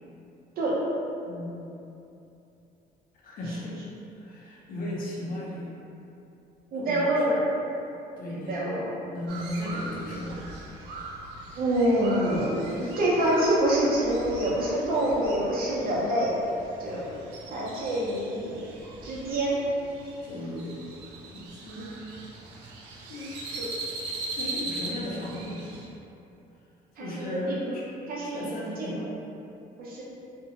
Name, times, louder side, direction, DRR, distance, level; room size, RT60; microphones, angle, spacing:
voice 1, 1.2-1.7 3.2-3.8 4.2-5.7 6.7-7.2 8.2-8.6 9.1-10.4 20.2-20.8 21.3-22.0 23.1-23.3 24.3-25.7 27.0-27.9 28.2-29.1, left 1 dB, 55° left, -4 dB, 0.6 m, -36 dB
voice 2, 6.7-7.4 8.3-8.9 11.5-16.3 16.8-17.2 17.5-18.6 19.0-19.6 23.5-23.7 27.0-27.8 28.1-28.5 28.8-28.9 29.8-30.0, right 1 dB, 60° right, -6 dB, 0.7 m, -26 dB
Crow, 9.3-25.9, right 2 dB, 85° right, 0.4 m, -40 dB
2.6 x 2.2 x 2.8 m, 2.7 s
cardioid pair, 110°, 17 cm